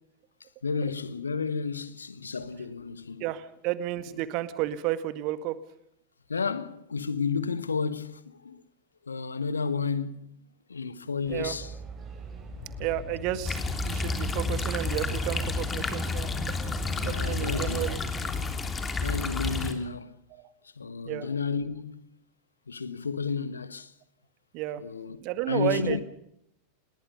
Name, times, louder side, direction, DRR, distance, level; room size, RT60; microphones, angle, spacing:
voice 1, 0.6-3.2 6.3-8.6 9.1-10.4 10.7-11.7 17.0-17.9 19.0-20.1 20.8-22.1 22.7-23.9 24.8-25.2 25.5-26.0, left 5 dB, 75° left, 1.5 m, -32 dB
voice 2, 3.2-5.6 11.3-11.6 12.8-16.3 17.1-18.0 20.3-20.5 21.1-21.3 24.5-24.8 25.2-26.0, right 14 dB, 40° right, 1.9 m, -32 dB
sound 1, 11.2-17.3, right 5 dB, 25° right, 6.7 m, -43 dB
sound 2, 12.4-17.0, left 9 dB, 40° left, 3.3 m, -47 dB
sound 3, 13.4-19.7, left 3 dB, 15° left, 3.3 m, -30 dB
28.5 x 20.5 x 5.5 m
figure-of-eight pair, 90°, 0 cm